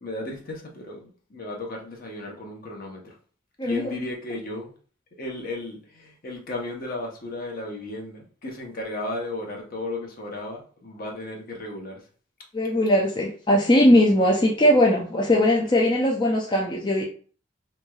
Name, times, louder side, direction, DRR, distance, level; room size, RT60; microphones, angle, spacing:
voice 1, 0.0-3.1 3.6-4.7 5.2-12.0, left 2 dB, 50° left, 0 dB, 0.9 m, -34 dB
voice 2, 12.5-17.0, left 1 dB, 25° left, -3 dB, 0.5 m, -20 dB
3.4 x 3.1 x 2.3 m, 0.41 s
head